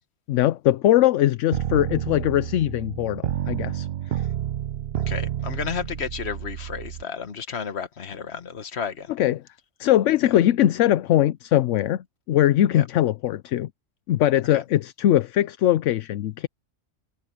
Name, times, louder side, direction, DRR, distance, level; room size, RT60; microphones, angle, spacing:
voice 1, 0.3-3.9 4.1-4.3 9.1-9.4 9.8-13.7 14.1-16.5, left 13 dB, 75° left, 0.9 m, -21 dB
sound 1, 1.5-7.0, right 11 dB, 55° right, 0.8 m, -30 dB
voice 2, 4.9-9.1 12.7-12.8 14.5-14.6, left 6 dB, 55° left, 1.5 m, -32 dB
omnidirectional pair, 1.3 m